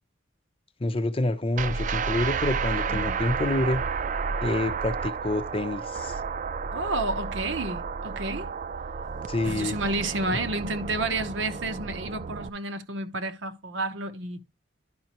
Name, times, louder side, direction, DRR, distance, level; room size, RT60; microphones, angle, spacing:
voice 1, 0.8-3.8 4.4-6.2 9.3-9.7, left 2 dB, 30° left, 0.7 m, -27 dB
sound 1, 1.6-12.5, right 5 dB, 40° right, 0.4 m, -31 dB
voice 2, 6.7-8.5 9.4-14.4, right 2 dB, 70° right, 1.0 m, -30 dB
11.5 x 5.4 x 3.0 m
head